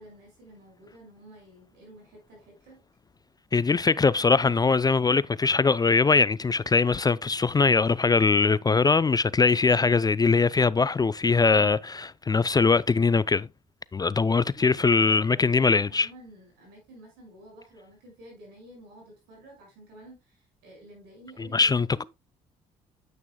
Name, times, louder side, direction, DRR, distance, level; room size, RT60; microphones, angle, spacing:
voice 1, 0.0-2.8 8.1-8.7 14.3-22.1, right 1 dB, 80° right, 5.6 m, -51 dB
voice 2, 3.5-13.5 13.9-16.1 21.5-22.0, left 4 dB, 25° left, 0.4 m, -22 dB
9.4 x 8.3 x 2.2 m
hypercardioid pair, 55°, 17 cm